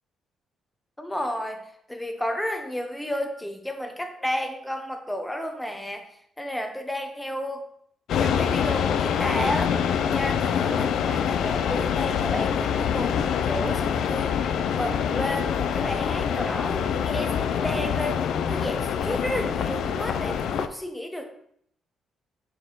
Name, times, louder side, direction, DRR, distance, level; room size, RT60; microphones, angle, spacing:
voice 1, 1.0-1.6 1.9-6.1 6.4-7.7 8.1-9.8 10.1-21.3, equal, 5° left, 5 dB, 0.9 m, -32 dB
sound 1, 8.1-20.7, left 8 dB, 75° left, 0.4 m, -25 dB
6.3 x 4.4 x 3.9 m, 0.68 s
cardioid pair, 90°, 0 cm